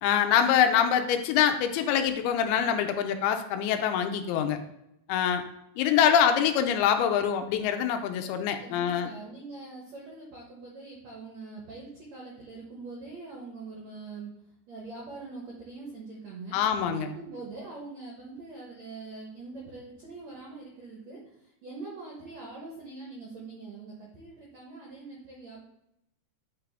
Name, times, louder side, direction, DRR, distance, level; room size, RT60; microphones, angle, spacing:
voice 1, 0.0-4.6 5.1-5.4 5.8-9.1 16.5-17.1, left 8 dB, 85° left, 6 dB, 2.5 m, -24 dB
voice 2, 8.6-14.3 14.7-25.6, right 3 dB, 80° right, -2 dB, 1.5 m, -43 dB
8.7 x 3.7 x 3.4 m, 0.81 s
omnidirectional pair, 4.6 m